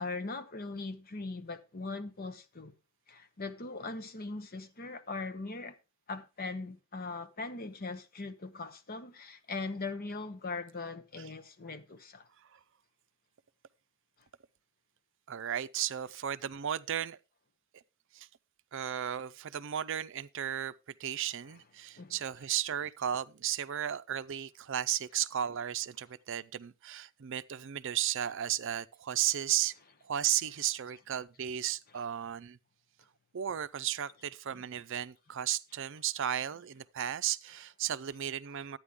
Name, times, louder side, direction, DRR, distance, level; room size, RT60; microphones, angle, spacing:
voice 1, 0.0-2.7 3.1-5.8 6.1-12.3 21.5-21.7 22.0-22.2 30.9-31.0 31.9-32.0 34.5-34.7 37.6-37.7, left 3 dB, 45° left, 1.0 m, -40 dB
voice 2, 15.3-17.2 18.1-18.3 18.7-20.7 21.0-29.7 30.0-32.6 33.3-38.8, right 10 dB, 60° right, 0.5 m, -34 dB
11.5 x 9.0 x 3.6 m
head